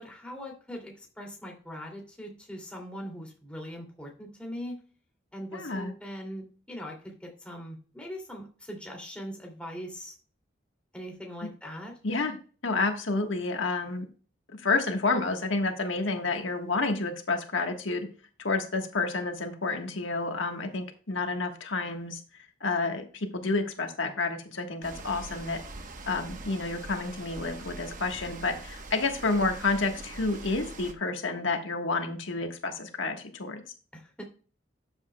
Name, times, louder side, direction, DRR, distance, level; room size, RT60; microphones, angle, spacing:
voice 1, 0.0-4.8 5.3-10.1 10.9-12.0 33.9-34.2, equal, 5° left, -1 dB, 2.5 m, -41 dB
voice 2, 5.5-5.9 12.0-12.4 12.6-14.1 14.5-18.1 18.4-22.2 22.6-25.6 26.1-33.6, left 3 dB, 80° left, 4 dB, 1.3 m, -29 dB
sound 1, 24.8-30.9, right 2 dB, 40° right, 1.0 m, -43 dB
13.0 x 8.1 x 2.2 m, 0.39 s
head